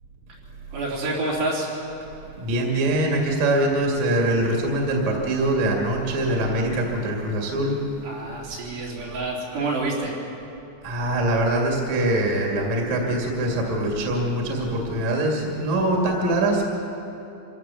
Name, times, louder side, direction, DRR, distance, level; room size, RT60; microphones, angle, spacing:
voice 1, 0.7-1.7 8.0-10.2, right 2 dB, 70° right, -5 dB, 5.8 m, -28 dB
voice 2, 2.4-7.8 10.8-16.7, right 1 dB, 45° right, -1 dB, 3.2 m, -23 dB
25.5 x 16.0 x 7.0 m, 2.8 s
omnidirectional pair, 5.1 m